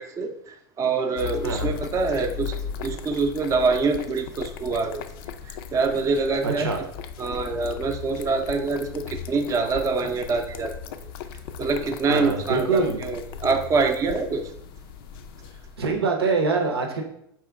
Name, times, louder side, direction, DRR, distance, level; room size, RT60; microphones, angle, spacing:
voice 1, 0.0-5.0 5.7-6.7 7.2-10.7 11.6-14.4, right 4 dB, 25° right, 5 dB, 0.5 m, -25 dB
sound 1, 1.2-16.0, left 7 dB, 70° left, 0.4 m, -37 dB
voice 2, 1.4-1.8 6.4-6.8 12.1-13.0 15.8-17.0, right 4 dB, 90° right, 3 dB, 0.8 m, -24 dB
4.8 x 3.0 x 3.4 m, 0.75 s
hypercardioid pair, 95°, 13 cm